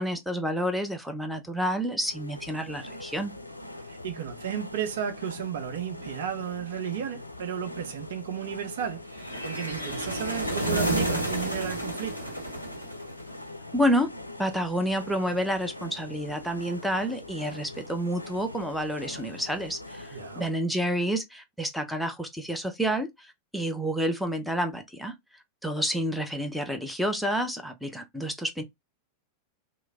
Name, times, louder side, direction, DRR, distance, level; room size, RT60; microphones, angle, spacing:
voice 1, 0.0-3.3 13.7-14.1 14.4-25.2 25.6-28.6, equal, ahead, 0.6 m, -29 dB
sound 1, 2.0-20.5, left 2 dB, 85° left, 0.4 m, -43 dB
voice 2, 3.9-9.0 9.4-12.3 20.1-20.4, right 8 dB, 60° right, 0.7 m, -33 dB
sound 2, 9.2-13.4, right 1 dB, 85° right, 0.9 m, -30 dB
3.1 x 2.0 x 3.5 m
figure-of-eight pair, 90°, 0 cm